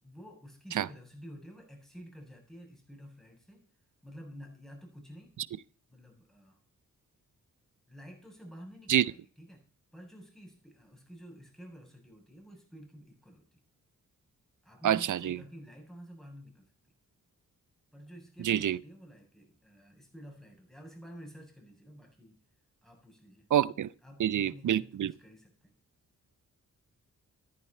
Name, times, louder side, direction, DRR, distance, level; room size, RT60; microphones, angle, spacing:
voice 1, 0.0-3.6 4.0-5.3 5.9-6.6 7.9-9.6 9.9-13.6 14.6-16.7 17.9-22.4 22.8-23.5 24.0-25.7, equal, ahead, 7.8 m, -50 dB
voice 2, 14.8-15.4 18.4-18.8 23.5-23.9 24.2-25.1, right 10 dB, 65° right, 0.7 m, -27 dB
14.5 x 10.0 x 4.5 m
cardioid pair, 55°, 33 cm